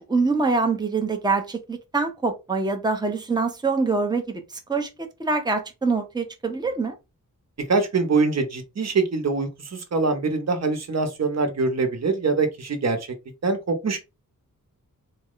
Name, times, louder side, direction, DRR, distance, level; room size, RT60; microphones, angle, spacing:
voice 1, 0.1-4.4 4.7-6.9, right 4 dB, 10° right, 0.6 m, -24 dB
voice 2, 7.7-13.1 13.4-14.0, right 4 dB, 50° right, 0.9 m, -24 dB
4.1 x 2.1 x 3.8 m
wide cardioid pair, 140°, 34 cm